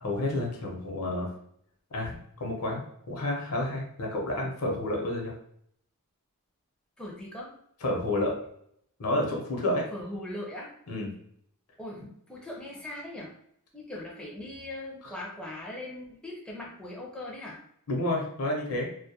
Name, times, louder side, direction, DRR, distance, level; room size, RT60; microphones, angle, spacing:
voice 1, 0.0-1.3 1.9-5.3 7.8-8.4 9.0-9.8 10.9-11.1 15.0-15.1 17.9-18.9, left 1 dB, 75° left, 0 dB, 0.7 m, -30 dB
voice 2, 7.0-7.5 9.9-10.7 11.8-13.3 13.7-17.6, left 1 dB, 5° left, -3 dB, 0.4 m, -40 dB
2.2 x 2.1 x 2.7 m, 0.67 s
head